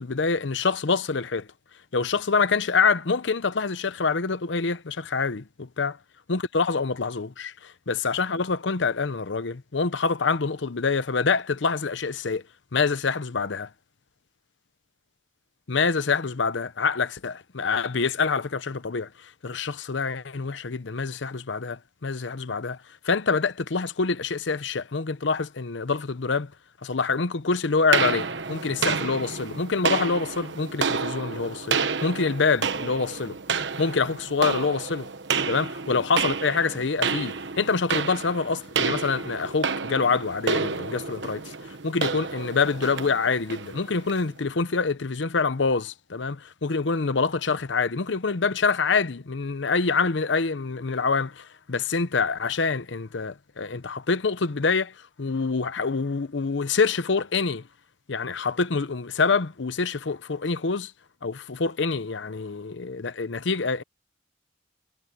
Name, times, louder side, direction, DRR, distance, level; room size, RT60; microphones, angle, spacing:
voice 1, 0.0-1.5 1.9-5.9 6.3-12.4 12.7-13.7 15.7-22.8 23.0-26.5 26.8-33.4 33.8-35.1 35.5-41.5 41.8-57.6 58.1-60.9 61.2-63.8, left 4 dB, 75° left, 0.8 m, -26 dB
sound 1, 27.9-44.3, right 5 dB, 70° right, 1.2 m, -30 dB
head